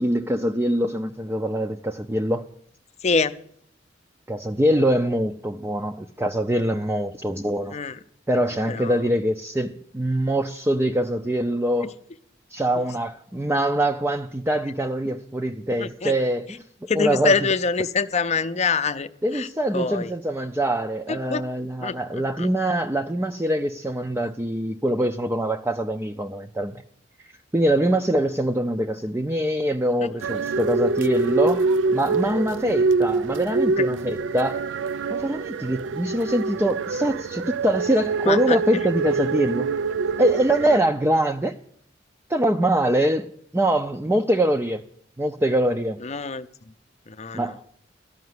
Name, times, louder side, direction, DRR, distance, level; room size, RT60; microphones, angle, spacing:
voice 1, 0.0-2.4 4.3-7.8 8.3-11.9 12.5-16.6 17.0-17.4 19.2-26.8 27.5-34.6 35.1-39.7 40.2-41.5 42.3-43.3 43.5-44.8 45.2-46.0 47.3-47.6, right 1 dB, 10° right, 0.4 m, -24 dB
voice 2, 3.0-3.3 7.7-8.0 8.7-9.0 11.8-11.9 15.8-16.1 16.9-19.5 19.7-20.1 21.1-21.4 21.8-22.5 30.0-30.1 32.6-32.8 33.8-33.9 38.2-38.6 46.0-46.5 47.1-47.5, left 5 dB, 35° left, 0.5 m, -25 dB
sound 1, 30.2-40.8, right 4 dB, 75° right, 0.4 m, -25 dB
13.5 x 5.8 x 9.4 m
head